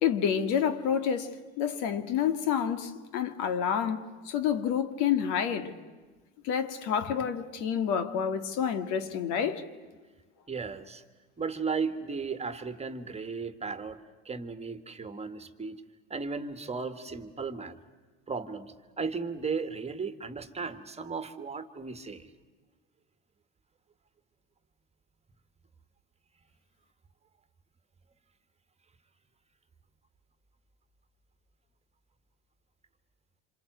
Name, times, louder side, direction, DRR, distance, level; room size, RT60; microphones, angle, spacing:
voice 1, 0.0-5.8 6.4-9.7, left 8 dB, 65° left, 2.0 m, -29 dB
voice 2, 10.5-11.0 11.4-14.0 14.3-15.8 16.1-17.8 18.3-22.3, right 5 dB, 20° right, 1.8 m, -35 dB
27.0 x 26.5 x 8.0 m
supercardioid pair, 95°, 32 cm